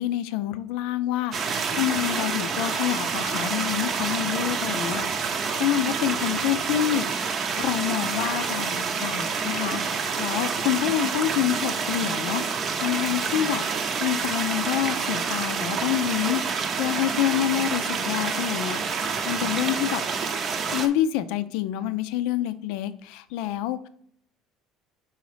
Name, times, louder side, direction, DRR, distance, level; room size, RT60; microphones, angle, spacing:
voice 1, 0.0-5.1 5.3-13.6 14.0-20.0 20.7-23.9, left 12 dB, 75° left, 13 dB, 0.5 m, -27 dB
sound 1, 1.3-20.9, right 5 dB, 30° right, 0.6 m, -28 dB
5.6 x 4.0 x 4.9 m, 0.66 s
cardioid pair, 165°, 0 cm